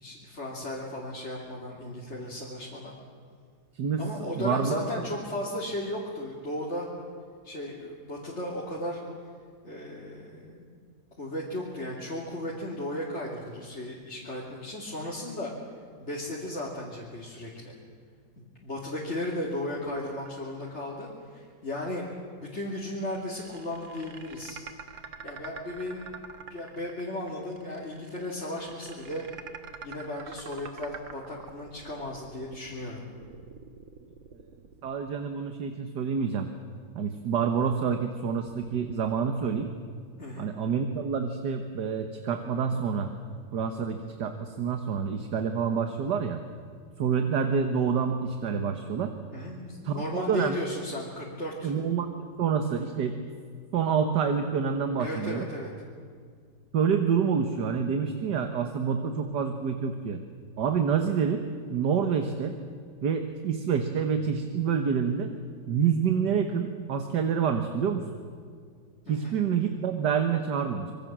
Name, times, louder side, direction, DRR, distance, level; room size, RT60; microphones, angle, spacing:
voice 1, 0.0-3.0 4.0-6.9 7.4-9.0 9.6-10.6 11.2-15.5 16.0-17.8 18.4-22.0 22.4-24.6 25.2-26.1 26.5-29.3 29.8-33.0 40.2-40.5 49.3-51.7 55.0-55.7 69.1-69.3, left 1 dB, 35° left, -4 dB, 3.2 m, -35 dB
voice 2, 3.7-4.0 4.4-5.1 34.8-36.5 37.0-39.7 40.4-43.1 43.5-46.4 47.0-49.1 49.8-50.5 51.6-53.2 53.7-55.5 56.7-60.2 60.6-61.4 61.7-62.6 63.0-65.3 65.7-68.0 69.1-70.9, right 6 dB, 65° right, 6 dB, 1.9 m, -27 dB
sound 1, 19.9-21.0 21.3-21.4 22.6-35.7 36.9-39.7, right 6 dB, 85° right, 2.3 m, -47 dB
26.0 x 23.0 x 7.6 m, 2.1 s
omnidirectional pair, 2.0 m